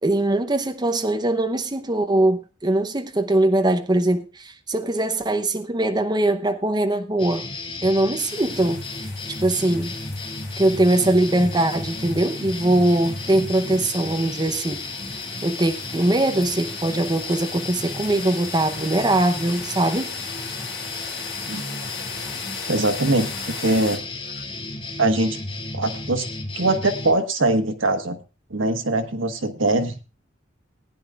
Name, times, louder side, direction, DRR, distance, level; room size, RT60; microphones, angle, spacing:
voice 1, 0.0-7.4 7.8-8.8 9.4-9.9 10.6-14.8 15.4-20.1, right 1 dB, 20° right, 0.8 m, -21 dB
sound 1, 7.2-27.1, left 2 dB, 30° left, 3.8 m, -33 dB
sound 2, 8.2-24.0, left 5 dB, 65° left, 4.0 m, -39 dB
voice 2, 22.7-24.0 25.0-25.4 25.7-26.3 26.5-28.2 28.5-30.0, right 2 dB, 90° right, 1.4 m, -22 dB
19.5 x 9.9 x 2.4 m
head